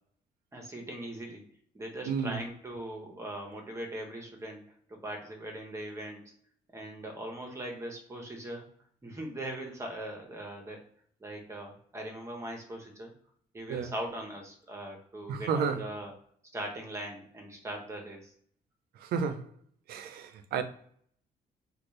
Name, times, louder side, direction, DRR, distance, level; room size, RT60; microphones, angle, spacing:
voice 1, 0.5-1.4 1.7-4.6 4.9-6.2 6.7-8.6 9.0-10.8 11.2-13.1 13.5-16.1 16.5-18.3, right 1 dB, 20° right, 1.0 m, -40 dB
voice 2, 2.1-2.4 13.7-13.9 15.3-15.8 19.0-19.5 19.9-20.6, right 6 dB, 80° right, 0.5 m, -31 dB
4.1 x 2.3 x 3.2 m
cardioid pair, 140°, 16 cm